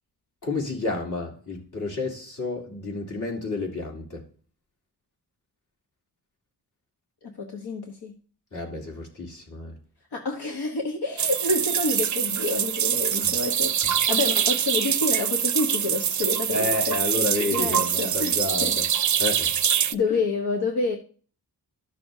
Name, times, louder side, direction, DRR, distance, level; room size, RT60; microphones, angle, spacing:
voice 1, 0.4-4.2 8.5-9.8 13.2-13.3 13.8-13.9 16.5-18.9 19.2-19.5, left 3 dB, 50° left, 3.1 m, -30 dB
voice 2, 7.2-8.1 10.1-13.7 14.1-18.8 19.9-21.0, left 3 dB, 75° left, 1.3 m, -28 dB
sound 1, 11.2-19.9, right 9 dB, 50° right, 0.5 m, -24 dB
13.0 x 6.5 x 2.8 m
cardioid pair, 70°, 40 cm